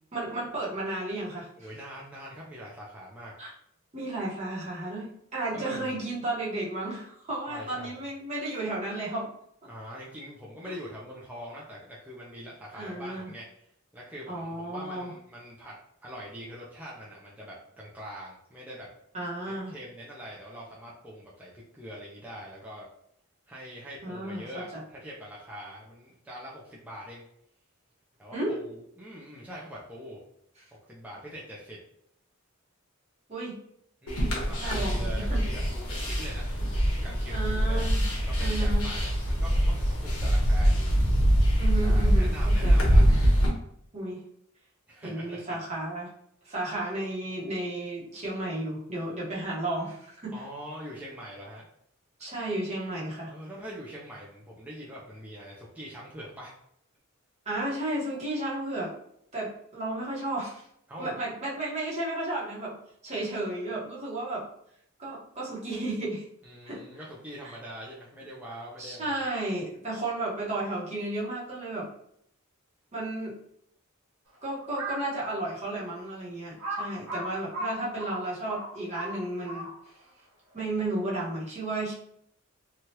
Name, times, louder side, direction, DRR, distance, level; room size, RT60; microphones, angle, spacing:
voice 1, 0.1-1.7 3.4-3.5 3.9-9.3 12.7-13.3 14.3-15.1 19.1-19.7 24.0-24.5 24.7-24.8 28.3-28.6 33.3-33.5 34.6-35.0 35.3-35.4 37.3-38.0 38.4-38.9 41.6-42.8 43.9-44.2 45.0-46.1 46.4-50.4 52.2-53.3 57.5-58.9 59.3-60.7 61.0-62.8 63.0-64.4 65.0-66.2 66.7-66.8 67.4-67.5 68.8-71.9 72.9-73.4 74.4-79.7 80.5-82.0, right 2 dB, 30° right, -6 dB, 1.0 m, -33 dB
voice 2, 1.6-3.3 5.5-6.0 7.5-8.0 9.7-13.7 13.9-15.8 16.0-18.9 19.5-22.9 23.5-27.2 28.2-30.2 30.7-31.8 34.0-37.9 38.3-40.9 41.8-43.3 44.9-45.4 50.3-51.7 53.3-56.5 60.9-61.1 66.4-69.2, equal, 5° right, -6 dB, 0.4 m, -43 dB
sound 1, 34.1-43.5, equal, 80° left, 1.0 m, -24 dB
Crow, 74.6-75.1 75.7-75.8 76.6-80.0, right 2 dB, 70° right, 1.1 m, -36 dB
3.1 x 2.3 x 2.8 m, 0.71 s
head